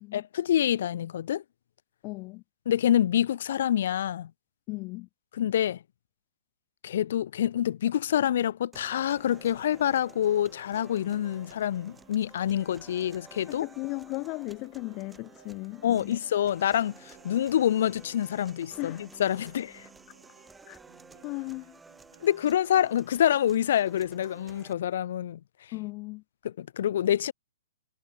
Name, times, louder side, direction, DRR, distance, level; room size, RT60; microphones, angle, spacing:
voice 1, 0.1-1.4 2.7-4.3 5.3-5.8 6.8-13.7 15.8-19.9 22.2-25.7 26.4-27.3, left 10 dB, 55° left, 0.6 m, -27 dB
voice 2, 2.0-2.4 4.7-5.1 13.5-16.2 18.8-19.1 20.7-20.8 21.2-21.8 25.7-26.2, left 25 dB, 30° left, 0.9 m, -36 dB
sound 1, 8.7-24.7, right 4 dB, 10° right, 1.1 m, -53 dB
Piano, 9.1-23.5, right 7 dB, 60° right, 2.8 m, -61 dB
figure-of-eight pair, 120°, 0 cm